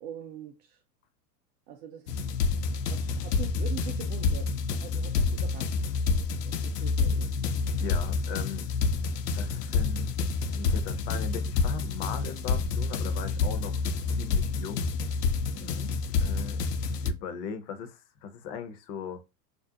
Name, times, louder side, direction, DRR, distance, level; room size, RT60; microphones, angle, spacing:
voice 1, 0.0-0.8 1.7-2.1 2.4-2.5 2.9-5.8 6.5-7.3 15.6-16.0, right 8 dB, 45° right, 0.5 m, -43 dB
sound 1, 2.1-17.1, left 4 dB, 75° left, 0.6 m, -28 dB
voice 2, 7.8-8.6 9.3-10.1 10.5-13.8 14.1-14.9 15.5-15.8 16.2-16.6 17.0-19.2, left 6 dB, 30° left, 0.5 m, -39 dB
sound 2, 11.0-14.6, right 5 dB, 80° right, 0.8 m, -49 dB
2.5 x 2.0 x 2.7 m
hypercardioid pair, 100°, 48 cm